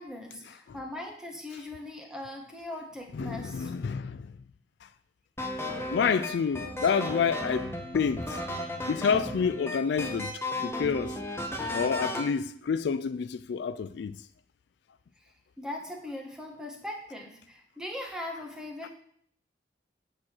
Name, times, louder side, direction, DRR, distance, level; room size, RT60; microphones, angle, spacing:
voice 1, 0.0-3.7 15.2-15.3 15.6-18.9, left 1 dB, 5° right, 1.3 m, -40 dB
voice 2, 3.1-4.3 5.9-8.3 8.9-10.3 10.6-11.2 11.7-14.1 18.8-18.9, left 6 dB, 65° left, 0.3 m, -28 dB
sound 1, 5.4-12.3, left 1 dB, 15° left, 1.1 m, -34 dB
8.7 x 6.2 x 4.4 m
head